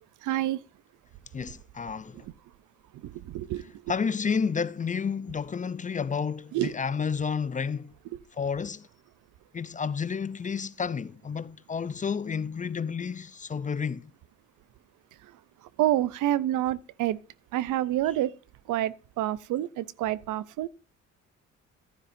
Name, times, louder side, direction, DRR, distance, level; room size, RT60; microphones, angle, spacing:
voice 1, 0.2-0.6 3.0-3.7 6.5-6.7 15.8-17.2 17.5-18.3 18.7-20.7, right 13 dB, 85° right, 0.6 m, -28 dB
voice 2, 1.3-2.2 3.9-7.9 8.4-8.9 9.5-14.1, left 6 dB, 25° left, 0.5 m, -31 dB
14.5 x 9.8 x 2.6 m
cardioid pair, 90°, 30 cm